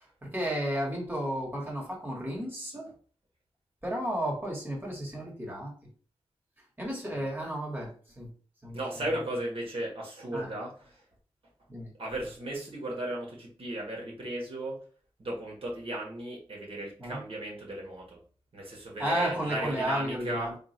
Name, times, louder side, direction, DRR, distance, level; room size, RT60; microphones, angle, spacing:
voice 1, 0.0-2.9 3.8-5.7 6.8-8.3 8.6-8.8 10.3-10.5 11.7-11.9 17.0-17.2 19.0-20.5, equal, 20° right, -3 dB, 1.8 m, -33 dB
voice 2, 8.7-11.0 12.0-14.8 15.2-18.2 18.5-20.5, right 1 dB, 65° right, -2 dB, 1.5 m, -35 dB
3.6 x 2.4 x 4.4 m, 0.42 s
wide cardioid pair, 100°, 10 cm